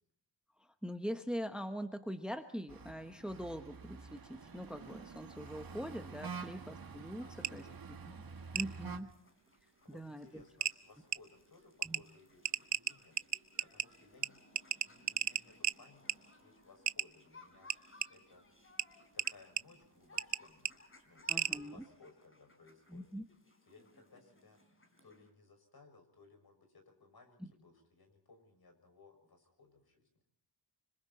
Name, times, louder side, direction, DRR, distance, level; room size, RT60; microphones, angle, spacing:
voice 1, 0.6-8.0 8.5-9.1 9.9-10.4 11.8-12.0 21.3-21.8 22.9-23.2 27.4-27.5, equal, ahead, 7 dB, 1.2 m, -43 dB
sound 1, 2.7-9.0, right 5 dB, 50° right, 1.7 m, -48 dB
voice 2, 7.2-8.4 9.8-14.4 14.8-18.4 18.9-23.1 23.7-24.6 25.0-30.1, left 3 dB, 55° left, 5 dB, 6.5 m, -62 dB
sound 2, 7.4-7.5 8.6-8.7 10.0-10.1 10.6-10.7 11.1-11.2 11.8-12.0 12.5-13.9 14.2-14.3 14.6-15.8 16.1-16.2 16.9-17.1 17.7-18.1 18.8-18.9 19.2-19.6 20.2-20.4 20.7-20.8 21.3-21.6, right 10 dB, 70° right, 0.8 m, -34 dB
sound 3, 8.3-25.3, left 2 dB, 30° left, 4.0 m, -63 dB
26.0 x 25.5 x 4.3 m, 0.65 s
wide cardioid pair, 155°, 44 cm